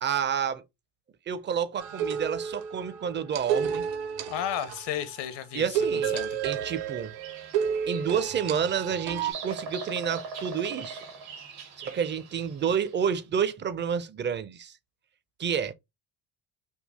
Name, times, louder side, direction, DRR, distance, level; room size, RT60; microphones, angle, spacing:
voice 1, 0.0-0.6 1.3-3.8 5.5-6.2 6.4-7.2 7.9-11.0 11.8-14.8 15.4-15.7, right 7 dB, 25° right, 0.4 m, -29 dB
sound 1, 1.8-5.0 5.7-9.3, right 8 dB, 65° right, 0.8 m, -31 dB
voice 2, 4.3-6.4, left 10 dB, 60° left, 0.8 m, -34 dB
Bird vocalization bird call bird song, 6.4-13.0, right 5 dB, 85° right, 1.6 m, -42 dB
3.6 x 2.3 x 3.4 m
supercardioid pair, 75°, 47 cm